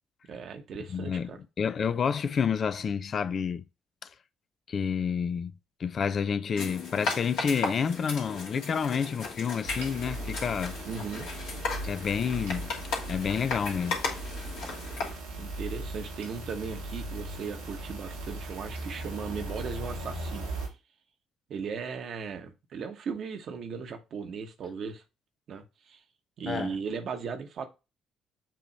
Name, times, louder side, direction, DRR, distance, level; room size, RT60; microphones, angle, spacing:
voice 1, 0.3-1.4 10.9-11.3 15.4-20.5 21.5-25.0 25.5-26.0 26.4-27.7, right 6 dB, 55° right, 1.1 m, -37 dB
voice 2, 0.9-1.3 1.6-3.6 4.0-4.1 4.7-5.5 5.8-10.8 11.9-12.7 13.1-14.0 26.5-26.8, left 6 dB, 45° left, 0.5 m, -29 dB
sound 1, 6.6-15.1, left 4 dB, 65° left, 2.0 m, -36 dB
sound 2, 9.6-20.7, right 1 dB, 80° right, 1.6 m, -38 dB
7.6 x 3.1 x 4.1 m
figure-of-eight pair, 45°, 0 cm